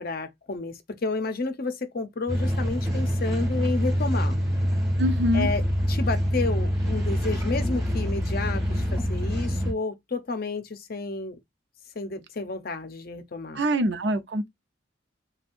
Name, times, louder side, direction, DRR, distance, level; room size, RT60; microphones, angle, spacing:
voice 1, 0.0-4.4 5.3-5.6 5.9-11.4 12.0-13.6, left 3 dB, 50° left, 0.6 m, -31 dB
sound 1, 2.3-9.7, equal, 20° right, 1.6 m, -25 dB
voice 2, 5.0-5.5 13.5-14.5, equal, 60° right, 0.7 m, -24 dB
5.2 x 2.3 x 2.5 m
head